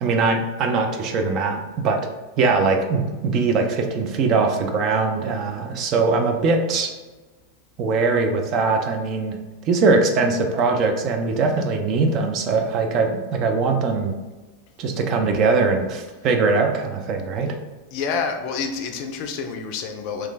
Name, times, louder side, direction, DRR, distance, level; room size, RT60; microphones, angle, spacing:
voice 1, 0.0-2.0 2.4-6.9 7.8-9.4 9.7-14.2 14.8-17.6, right 4 dB, 35° right, 4 dB, 0.4 m, -21 dB
voice 2, 17.9-20.3, left 5 dB, 45° left, 4 dB, 0.4 m, -28 dB
3.1 x 2.3 x 3.4 m, 1.2 s
figure-of-eight pair, 90°, 0 cm